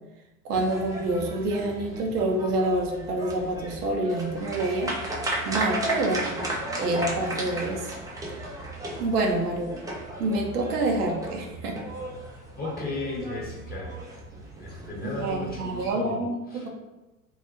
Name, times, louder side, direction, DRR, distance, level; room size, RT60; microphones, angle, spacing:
voice 1, 0.4-4.9 5.4-6.4 6.8-7.9 9.0-9.7 10.2-11.8 15.0-16.7, right 2 dB, 90° right, 1 dB, 0.6 m, -27 dB
sound 1, 0.5-15.9, right 1 dB, 10° right, 0.3 m, -35 dB
voice 2, 12.5-13.9 14.6-16.7, left 2 dB, 20° left, -4 dB, 0.9 m, -35 dB
2.2 x 2.0 x 2.7 m, 1.0 s
hypercardioid pair, 75°, 45 cm